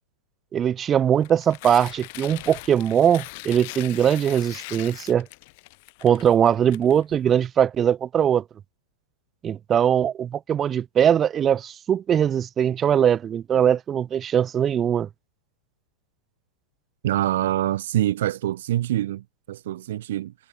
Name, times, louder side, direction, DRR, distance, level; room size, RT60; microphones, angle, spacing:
voice 1, 0.5-5.3 6.0-8.4 9.4-15.1, right 9 dB, 25° right, 0.9 m, -21 dB
Tearing, 1.1-7.4, left 27 dB, 55° left, 2.7 m, -41 dB
voice 2, 17.0-20.3, right 13 dB, 70° right, 0.7 m, -25 dB
hypercardioid pair, 115°, 0 cm